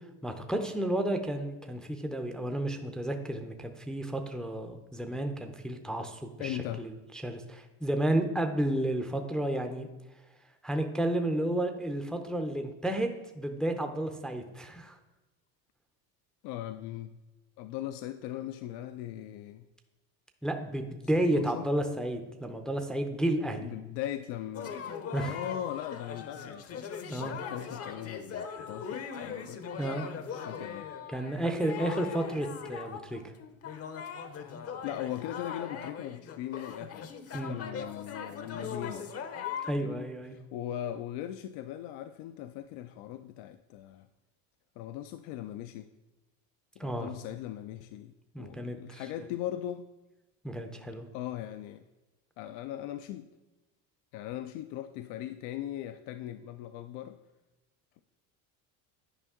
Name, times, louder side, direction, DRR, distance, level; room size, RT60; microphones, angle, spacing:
voice 1, 0.2-6.9 7.2-9.9 10.6-15.0 20.4-23.7 25.1-25.3 27.1-27.3 29.8-30.1 31.1-33.2 37.3-37.6 39.7-40.4 46.8-47.1 48.3-49.3 50.4-51.1, right 1 dB, ahead, 5 dB, 0.5 m, -32 dB
voice 2, 6.4-6.9 16.4-17.2 17.6-19.7 21.1-21.7 23.6-24.8 25.1-26.9 27.2-29.7 30.3-30.9 34.8-39.1 39.8-44.1 44.8-45.9 46.8-49.9 51.1-51.8 52.4-53.3 54.1-57.2, left 12 dB, 70° left, 10 dB, 0.5 m, -39 dB
sound 1, 24.5-39.7, left 7 dB, 35° left, 0.7 m, -40 dB
9.9 x 5.1 x 3.6 m, 1.1 s
supercardioid pair, 110°, 41 cm